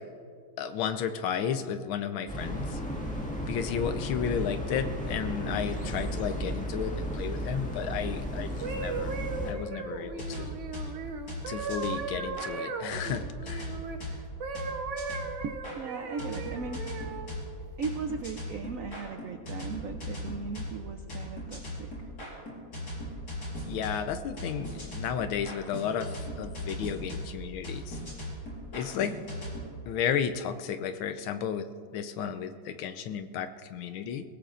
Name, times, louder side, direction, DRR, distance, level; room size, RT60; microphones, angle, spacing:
voice 1, 0.6-2.8 3.5-9.1 9.4-10.5 11.5-13.8 23.7-28.0 28.7-29.2 29.9-31.7 31.9-34.2, left 8 dB, 90° left, 9 dB, 1.6 m, -33 dB
sound 1, 2.3-9.5, equal, 5° left, 1.5 m, -34 dB
sound 2, 8.6-14.0 14.4-17.3 17.9-18.2, right 4 dB, 50° right, 1.0 m, -37 dB
sound 3, 10.1-12.5 12.9-15.8 16.2-29.6, left 1 dB, 50° left, 5.2 m, -39 dB
voice 2, 15.4-17.0 17.8-21.9 24.5-24.8, right 5 dB, 80° right, 7 dB, 0.7 m, -38 dB
22.0 x 17.0 x 2.5 m, 2.1 s
omnidirectional pair, 2.2 m